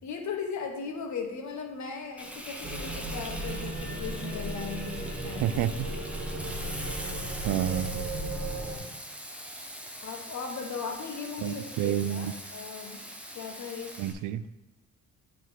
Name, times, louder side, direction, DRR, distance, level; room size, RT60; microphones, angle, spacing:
voice 1, 0.0-5.6 10.0-13.0 13.3-13.9, left 5 dB, 70° left, 3 dB, 1.4 m, -37 dB
Frying (food), 2.2-14.1, equal, 5° right, 1.2 m, -42 dB
sound 1, 2.6-8.8, right 1 dB, 30° right, 1.9 m, -35 dB
voice 2, 5.4-5.9 7.4-8.0 11.4-12.3 14.0-14.4, right 11 dB, 85° right, 14 dB, 0.5 m, -29 dB
9.2 x 3.7 x 4.6 m, 1.1 s
cardioid pair, 90°, 30 cm